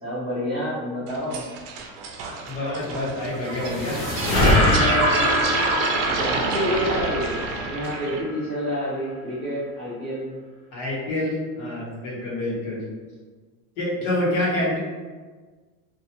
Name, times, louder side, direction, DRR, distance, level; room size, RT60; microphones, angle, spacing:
voice 1, 0.0-1.5 6.2-10.4, equal, 15° right, -11 dB, 0.5 m, -28 dB
sound 1, 1.1-8.2, right 4 dB, 65° right, 0.5 m, -28 dB
voice 2, 2.5-4.0 4.3-5.5 10.7-12.8 13.8-14.8, left 1 dB, 75° left, -6 dB, 1.2 m, -27 dB
sound 2, 3.1-8.5, left 1 dB, 45° left, 0.7 m, -24 dB
2.4 x 2.1 x 2.9 m, 1.4 s
cardioid pair, 170°, 43 cm